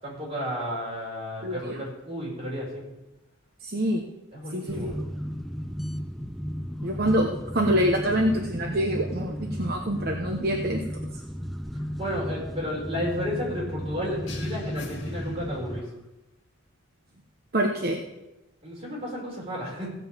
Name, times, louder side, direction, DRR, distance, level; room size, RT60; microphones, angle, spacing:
voice 1, 0.0-2.9 4.3-5.0 12.0-15.9 18.6-19.9, equal, 30° right, -4 dB, 4.9 m, -32 dB
voice 2, 1.4-1.8 3.6-4.0 4.5-4.9 6.8-10.8 17.5-18.0, equal, 50° right, 2 dB, 1.0 m, -26 dB
sound 1, 4.7-15.8, equal, ahead, 0.4 m, -34 dB
sound 2, 14.3-16.0, left 3 dB, 65° left, 2.4 m, -44 dB
16.0 x 5.4 x 7.5 m, 1.0 s
head